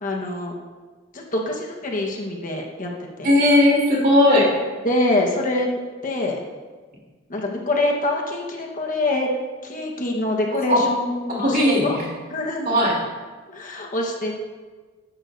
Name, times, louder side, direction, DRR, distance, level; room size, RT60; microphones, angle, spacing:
voice 1, 0.0-0.5 1.1-2.9 3.2-3.3 4.8-6.4 7.3-9.3 9.6-12.0 12.3-12.7 13.5-14.4, left 2 dB, 40° left, 0 dB, 1.4 m, -25 dB
voice 2, 3.2-4.5 10.7-10.9 11.4-12.1 12.6-13.0, left 1 dB, 45° right, -3 dB, 3.3 m, -17 dB
13.0 x 11.0 x 2.7 m, 1.4 s
head